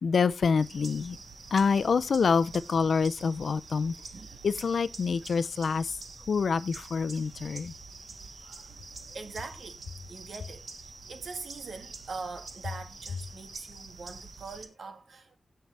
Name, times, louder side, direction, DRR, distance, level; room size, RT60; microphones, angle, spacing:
voice 1, 0.0-1.2 1.5-3.9 4.4-5.9 6.3-7.7, left 5 dB, 80° left, 0.6 m, -26 dB
sound 1, 0.6-14.7, right 4 dB, 65° right, 1.6 m, -46 dB
voice 2, 4.1-4.4 8.4-15.4, right 4 dB, 85° right, 1.7 m, -43 dB
17.0 x 5.7 x 3.4 m
wide cardioid pair, 140°, 0 cm